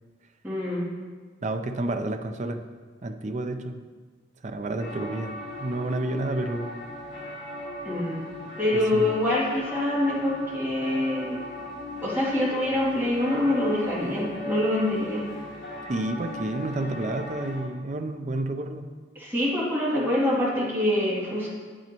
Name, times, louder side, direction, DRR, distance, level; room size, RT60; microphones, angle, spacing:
voice 1, 0.4-0.9 7.8-8.3 8.6-11.4 12.0-15.3 19.1-21.5, left 1 dB, 10° right, -8 dB, 2.5 m, -25 dB
voice 2, 1.4-2.6 3.0-3.8 4.4-6.7 8.7-9.1 15.8-18.9, right 2 dB, 40° right, 7 dB, 0.5 m, -30 dB
sound 1, 4.8-17.6, left 1 dB, 80° left, 2.9 m, -38 dB
9.6 x 8.9 x 3.0 m, 1.5 s
head